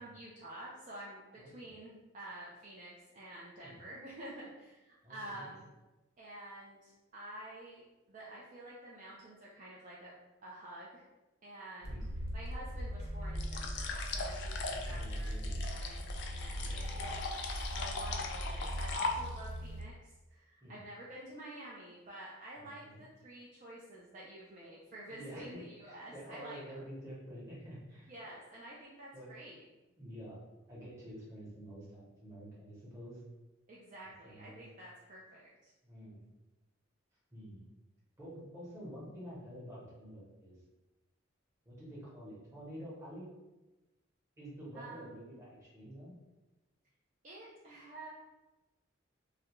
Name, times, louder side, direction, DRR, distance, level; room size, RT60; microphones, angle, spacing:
voice 1, 0.0-5.7 6.2-10.1 10.4-11.0 11.4-12.0 12.3-17.2 17.5-26.8 28.1-29.6 33.7-35.7 44.7-45.3 47.2-48.1, right 1 dB, 40° right, -5 dB, 0.3 m, -49 dB
voice 2, 1.4-1.7 3.6-3.9 5.0-5.5 11.8-12.1 14.6-15.6 16.6-17.0 20.6-20.8 22.6-23.0 25.1-28.1 29.1-29.3 30.0-30.4 30.7-33.2 34.2-34.6 35.8-36.2 37.3-37.7 38.2-40.6 41.6-43.3 44.4-46.1, equal, 15° right, -8 dB, 0.8 m, -49 dB
sound 1, 11.8-19.8, equal, 90° right, 0.6 m, -40 dB
sound 2, 13.3-19.6, left 3 dB, 55° left, 0.3 m, -40 dB
2.4 x 2.1 x 2.9 m, 1.1 s
head